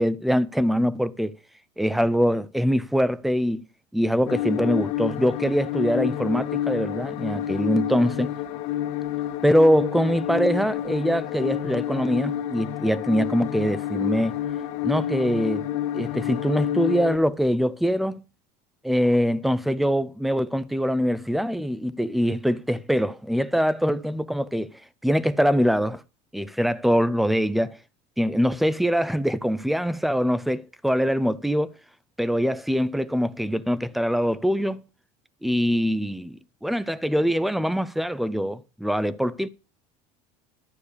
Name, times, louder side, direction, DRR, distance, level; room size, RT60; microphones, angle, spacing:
voice 1, 0.0-1.3 1.8-3.7 3.9-8.3 9.4-14.4 14.8-15.7 15.9-18.2 18.8-24.7 25.0-26.0 26.3-27.8 28.2-31.7 32.2-34.8 35.4-39.5, equal, ahead, 0.5 m, -23 dB
sound 1, 4.3-17.2, left 11 dB, 80° left, 2.0 m, -29 dB
12.5 x 6.7 x 6.6 m
cardioid pair, 155°, 17 cm